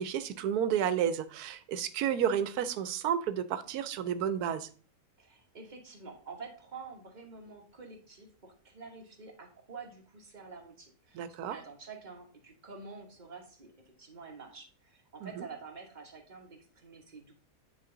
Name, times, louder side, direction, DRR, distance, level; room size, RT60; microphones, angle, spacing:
voice 1, 0.0-4.7 11.1-11.6 15.2-15.3, right 9 dB, 85° right, 14 dB, 1.1 m, -31 dB
voice 2, 5.2-13.7 14.0-17.3, right 4 dB, 30° right, 2 dB, 1.3 m, -48 dB
9.4 x 3.7 x 3.8 m, 0.42 s
omnidirectional pair, 1.6 m